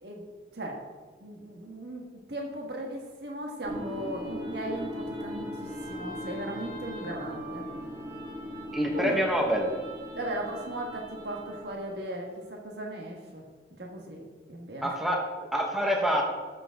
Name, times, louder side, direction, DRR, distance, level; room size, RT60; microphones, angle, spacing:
voice 1, 1.2-2.0 2.3-7.6 8.9-9.1 10.1-13.4 13.8-14.2 14.5-14.9, right 1 dB, 65° right, 0 dB, 1.5 m, -37 dB
sound 1, 3.6-11.8, equal, 25° right, 1.9 m, -39 dB
voice 2, 8.7-9.7 14.8-15.2 15.5-16.3, equal, ahead, 0 dB, 1.3 m, -26 dB
13.0 x 7.0 x 3.7 m, 1.4 s
head